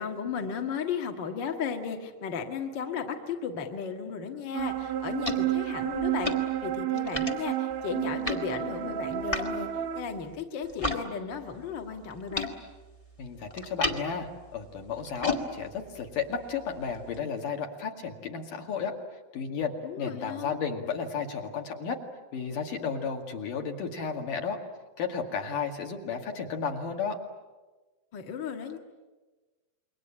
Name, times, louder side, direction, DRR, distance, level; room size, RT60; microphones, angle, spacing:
voice 1, 0.0-9.7 9.9-12.5 19.8-20.5 28.1-28.8, left 6 dB, 40° left, 4 dB, 1.8 m, -35 dB
sound 1, 4.5-10.0, right 12 dB, 65° right, 1.8 m, -31 dB
sound 2, 4.6-11.0 11.3-17.2, left 2 dB, 20° left, 0.9 m, -37 dB
voice 2, 13.2-19.0 19.3-22.0 22.3-24.6 25.0-27.2, left 6 dB, 60° left, 3 dB, 3.6 m, -33 dB
28.0 x 23.0 x 8.8 m, 1.2 s
omnidirectional pair, 4.5 m